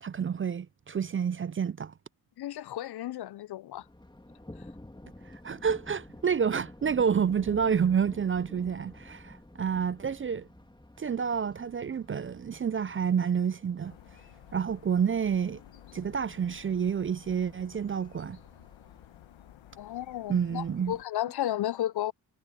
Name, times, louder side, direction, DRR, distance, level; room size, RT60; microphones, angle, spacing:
voice 1, 0.0-1.9 5.3-10.5 11.0-14.0 14.5-15.6 15.9-18.4 20.3-20.9, right 7 dB, 30° right, 0.4 m, -29 dB
voice 2, 2.4-3.9 19.8-22.1, left 13 dB, 60° left, 0.6 m, -33 dB
Thunder, 3.8-19.7, left 1 dB, 10° left, 2.6 m, -51 dB
sound 1, 13.8-21.0, left 12 dB, 85° left, 1.2 m, -53 dB
cardioid pair, 60°, 45 cm